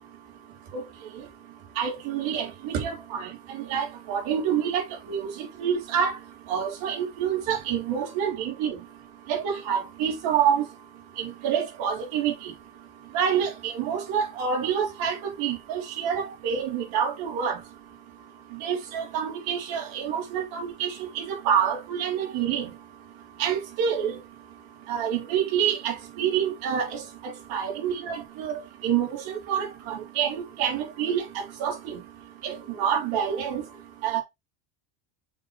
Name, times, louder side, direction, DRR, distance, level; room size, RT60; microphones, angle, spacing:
voice 1, 1.8-6.2 6.5-8.8 9.3-10.7 11.2-12.5 13.1-17.6 18.5-22.7 23.4-24.2 24.9-32.0 32.4-33.6 34.0-34.2, right 8 dB, 70° right, 3.5 m, -27 dB
7.3 x 5.0 x 3.4 m
cardioid pair, 135°, 50 cm